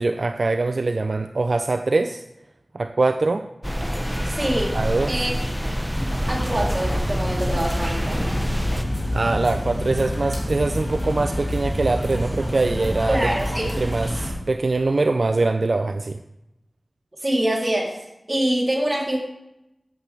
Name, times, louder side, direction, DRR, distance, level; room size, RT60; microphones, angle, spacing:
voice 1, 0.0-2.2 2.7-3.5 4.7-5.1 9.1-13.4 13.6-16.2, right 3 dB, 70° right, 8 dB, 0.4 m, -23 dB
sound 1, 3.6-8.8, equal, ahead, 0.9 m, -27 dB
voice 2, 4.2-4.8 5.1-5.4 6.0-8.2 13.1-13.6 17.2-19.2, right 1 dB, 35° right, -3 dB, 3.4 m, -25 dB
sound 2, 5.9-14.3, equal, 15° left, 2.9 m, -27 dB
14.0 x 7.8 x 3.5 m, 0.88 s
wide cardioid pair, 55°, 0 cm